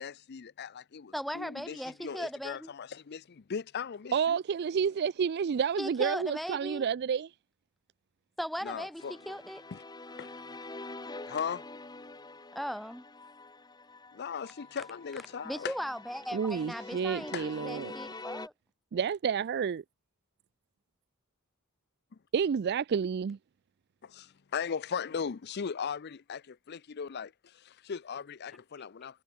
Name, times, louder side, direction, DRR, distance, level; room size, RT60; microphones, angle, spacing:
voice 1, 0.0-4.4 8.6-9.4 9.7-9.8 10.2-10.6 11.3-11.7 14.1-15.7 17.3-17.5 24.0-29.2, left 6 dB, 50° left, 0.5 m, -38 dB
voice 2, 1.1-2.7 5.8-6.8 8.4-9.6 12.5-13.0 15.4-18.5, equal, ahead, 1.7 m, -38 dB
voice 3, 4.1-7.3 16.3-17.9 18.9-19.8 22.3-23.4, right 7 dB, 50° right, 0.3 m, -30 dB
sound 1, 9.0-18.5, left 2 dB, 20° left, 1.4 m, -46 dB
head